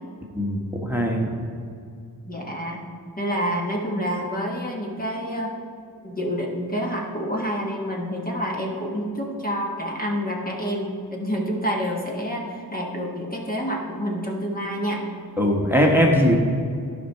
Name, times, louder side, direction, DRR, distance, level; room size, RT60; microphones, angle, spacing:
voice 1, 0.3-1.3 15.4-16.3, equal, 5° right, -2 dB, 1.3 m, -20 dB
voice 2, 2.3-2.8 3.2-5.5 6.0-15.3, equal, 20° left, -1 dB, 1.2 m, -28 dB
11.0 x 5.2 x 4.5 m, 2.4 s
cardioid pair, 70°, 40 cm